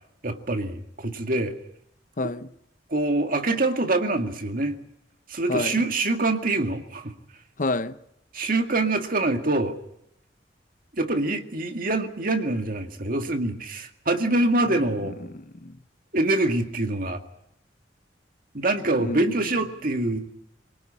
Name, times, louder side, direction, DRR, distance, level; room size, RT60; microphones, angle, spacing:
voice 1, 0.2-1.5 2.9-4.8 5.3-7.1 8.3-9.8 11.0-15.1 16.1-17.2 18.5-20.3, right 2 dB, 50° right, 2.0 m, -25 dB
voice 2, 2.2-2.5 5.5-5.8 7.6-8.0 14.6-15.8 19.0-19.3, left 2 dB, 50° left, 0.9 m, -30 dB
24.5 x 18.5 x 8.8 m
head